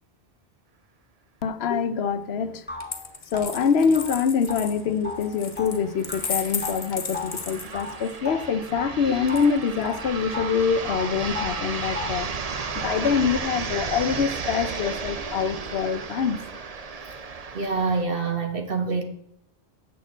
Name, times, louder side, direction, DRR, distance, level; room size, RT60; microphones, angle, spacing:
voice 1, 1.4-2.6 3.3-12.3 12.8-16.4, left 6 dB, 75° left, 0.9 m, -25 dB
sound 1, 2.1-2.2 2.7-9.0 9.3-10.6 10.9-12.3, left 3 dB, 10° left, 1.8 m, -36 dB
Coin (dropping), 2.8-8.2 9.3-10.0, left 5 dB, 45° left, 1.1 m, -35 dB
sound 2, 4.0-4.1 4.4-4.5 5.2-18.0, right 5 dB, 40° right, 0.7 m, -34 dB
voice 2, 17.5-19.0, right 4 dB, 60° right, 1.5 m, -26 dB
7.4 x 6.5 x 7.4 m
omnidirectional pair, 1.1 m